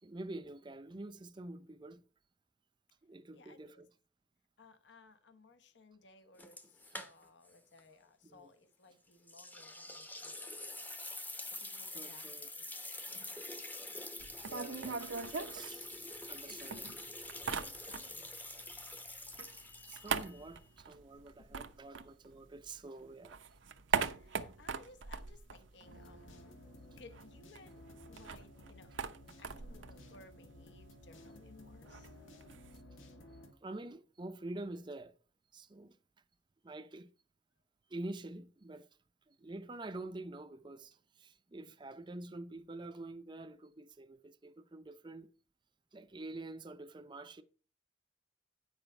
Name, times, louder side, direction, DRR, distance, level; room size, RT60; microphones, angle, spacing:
voice 1, 0.0-2.0 3.0-3.9 8.2-8.5 11.9-12.5 13.1-13.4 14.5-16.0 16.3-17.1 19.9-23.4 33.6-35.2 35.5-36.0 36.6-37.1 37.9-38.9 39.3-45.3 45.9-47.4, right 2 dB, 25° right, 0.5 m, -47 dB
voice 2, 3.3-3.8 4.6-10.8 11.4-14.2 16.4-16.6 17.5-18.5 21.4-21.6 24.1-26.4 27.0-28.9 29.4-32.1, left 3 dB, 65° left, 0.9 m, -61 dB
sound 1, 6.4-7.5 7.8-7.9 9.3-20.6, left 2 dB, 10° left, 0.8 m, -46 dB
sound 2, 14.2-16.4 16.7-18.3 18.6-22.8 23.1-26.4 26.6-26.7 27.0-32.8, right 5 dB, 75° right, 0.7 m, -41 dB
sound 3, 25.8-33.5, left 1 dB, 90° left, 1.5 m, -55 dB
8.9 x 5.1 x 5.3 m
head